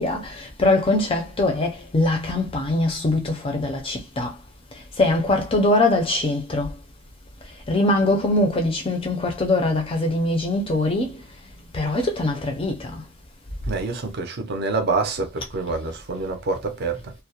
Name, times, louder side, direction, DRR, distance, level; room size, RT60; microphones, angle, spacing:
voice 1, 0.0-4.3 5.0-6.7 7.7-11.2 11.7-13.0, left 2 dB, 25° left, 0.4 m, -22 dB
voice 2, 13.7-17.1, right 3 dB, 50° right, 0.5 m, -26 dB
2.3 x 2.0 x 2.7 m
head